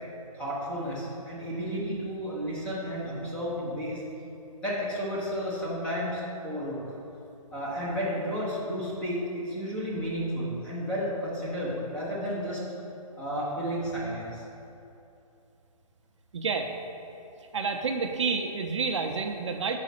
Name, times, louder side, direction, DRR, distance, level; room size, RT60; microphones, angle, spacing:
voice 1, 0.3-4.0 4.6-6.8 7.5-12.6 13.2-14.4, equal, 5° left, -8 dB, 0.6 m, -32 dB
voice 2, 16.3-16.7 17.5-19.8, right 4 dB, 50° right, 5 dB, 0.5 m, -29 dB
4.7 x 4.1 x 5.8 m, 2.9 s
hypercardioid pair, 165°, 19 cm